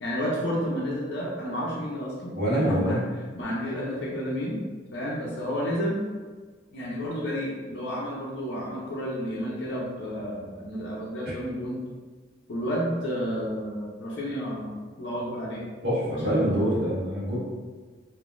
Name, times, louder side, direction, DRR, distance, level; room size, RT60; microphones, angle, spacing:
voice 1, 0.0-3.0 3.3-4.6 4.9-6.0 6.7-11.8 12.5-14.7 15.0-15.6 16.1-16.7, equal, 60° left, -6 dB, 0.5 m, -31 dB
voice 2, 2.3-3.0 15.8-17.4, equal, 55° right, -9 dB, 1.5 m, -25 dB
3.6 x 2.6 x 2.4 m, 1.4 s
head